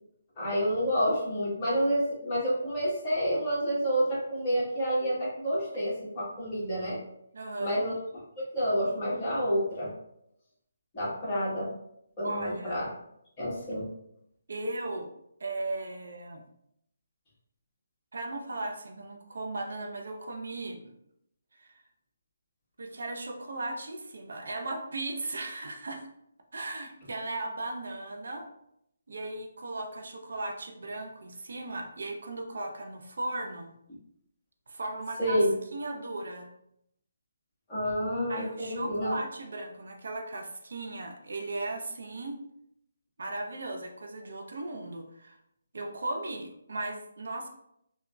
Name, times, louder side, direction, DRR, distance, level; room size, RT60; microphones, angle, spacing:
voice 1, 0.4-7.0 7.6-7.9 8.4-9.9 10.9-11.7 12.2-12.9 13.4-13.9 35.2-35.5 37.7-39.1, equal, 25° left, -8 dB, 1.3 m, -29 dB
voice 2, 7.3-7.8 12.2-12.8 14.5-15.1 15.4-16.4 18.1-20.9 21.5-21.8 22.8-26.1 26.5-28.5 29.1-33.7 34.7-35.4 35.7-36.5 38.3-42.4 43.2-45.4 45.7-47.5, right 2 dB, 70° right, 3 dB, 0.5 m, -37 dB
3.6 x 2.1 x 2.3 m, 0.75 s
hypercardioid pair, 160°, 0 cm